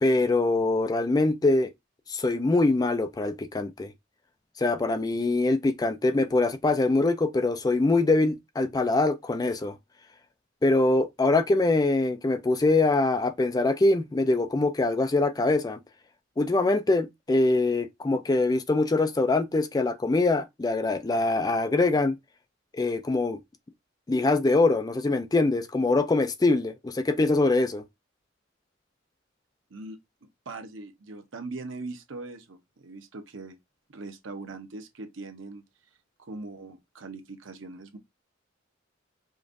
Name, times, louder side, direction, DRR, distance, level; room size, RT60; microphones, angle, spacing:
voice 1, 0.0-1.7 2.1-3.9 4.6-9.7 10.6-15.8 16.4-22.1 22.7-23.4 24.1-27.8, left 2 dB, 20° left, 0.4 m, -23 dB
voice 2, 29.7-33.6 33.9-35.6 36.2-38.0, right 3 dB, 80° right, 0.8 m, -41 dB
5.1 x 2.5 x 2.5 m
head